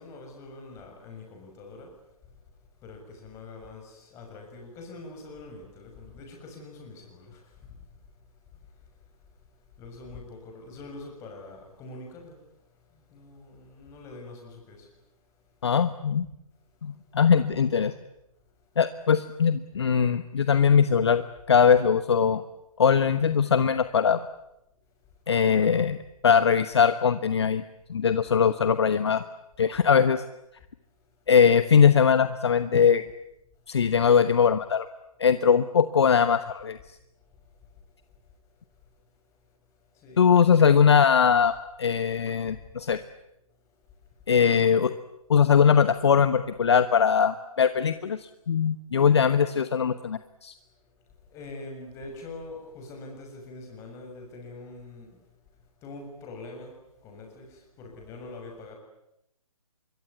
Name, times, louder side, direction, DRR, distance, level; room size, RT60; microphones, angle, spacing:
voice 1, 0.0-2.0 2.8-8.0 9.8-12.4 12.9-14.9 37.6-37.7 39.9-40.3 51.3-55.2 55.8-56.7 57.0-58.7, left 2 dB, 15° left, 2 dB, 6.7 m, -44 dB
voice 2, 15.6-16.3 16.8-17.9 18.8-22.4 22.8-24.2 25.3-26.0 26.2-27.6 27.9-29.2 29.6-30.2 31.3-33.0 33.7-34.9 35.2-36.8 40.2-43.0 44.3-44.9 45.3-50.5, left 7 dB, 45° left, 12 dB, 1.1 m, -21 dB
25.5 x 23.0 x 9.6 m, 0.85 s
figure-of-eight pair, 140°, 19 cm